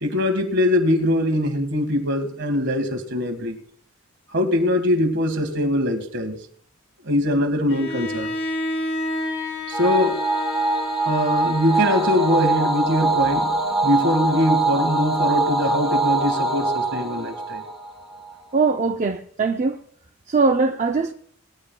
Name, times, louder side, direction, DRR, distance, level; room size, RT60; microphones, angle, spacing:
voice 1, 0.0-3.6 4.3-6.4 7.1-8.3 9.7-10.2 11.0-13.5 13.8-17.6, left 1 dB, 60° right, 1.6 m, -22 dB
Bowed string instrument, 7.7-12.7, left 2 dB, 65° left, 2.7 m, -30 dB
sound 1, 9.7-18.3, right 2 dB, ahead, 2.3 m, -23 dB
voice 2, 18.5-19.8 20.3-21.1, right 4 dB, 35° right, 0.5 m, -21 dB
19.5 x 13.0 x 2.2 m
head